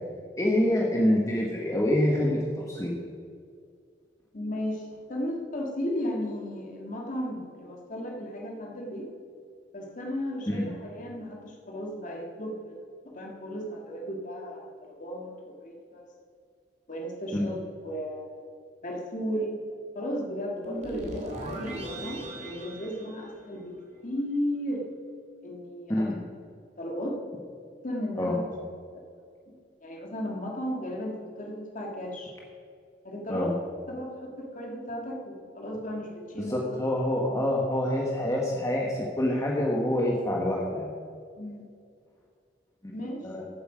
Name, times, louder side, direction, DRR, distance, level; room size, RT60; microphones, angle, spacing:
voice 1, 0.4-2.9 10.5-10.7 17.3-17.5 25.9-26.1 28.2-28.3 33.3-33.5 36.4-40.9 42.8-42.9 43.2-43.4, left 1 dB, 20° left, -2 dB, 1.3 m, -26 dB
voice 2, 4.3-9.1 9.7-12.8 13.0-16.0 16.9-17.6 17.8-18.4 18.8-19.6 19.9-23.8 24.0-24.9 25.4-26.1 26.8-27.2 27.8-28.4 29.5-29.6 29.8-32.3 33.0-33.5 33.9-36.6 41.4-41.6 42.9-43.3, equal, 45° left, -1 dB, 1.9 m, -35 dB
Electric Chimes, 20.6-23.9, right 1 dB, 40° right, 2.7 m, -38 dB
15.0 x 8.3 x 5.0 m, 2.2 s
head